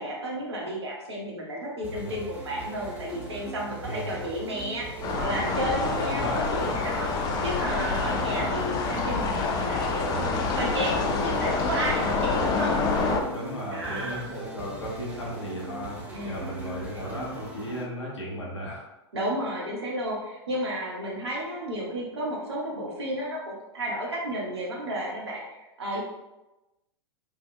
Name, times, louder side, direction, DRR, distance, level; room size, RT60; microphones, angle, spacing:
voice 1, 0.0-4.9 5.1-7.1 7.4-12.8 13.7-14.3 16.1-16.6 18.3-18.5 19.1-26.0, right 1 dB, 65° right, -2 dB, 1.2 m, -32 dB
sound 1, 1.8-17.8, right 2 dB, 10° right, 0.7 m, -40 dB
voice 2, 3.8-4.3 5.8-6.5 8.0-8.6 13.3-16.0 16.2-18.9, equal, 85° left, -5 dB, 1.4 m, -35 dB
sound 2, 5.0-13.2, left 4 dB, 25° left, 0.5 m, -27 dB
5.2 x 2.7 x 2.2 m, 1.0 s
figure-of-eight pair, 100°, 15 cm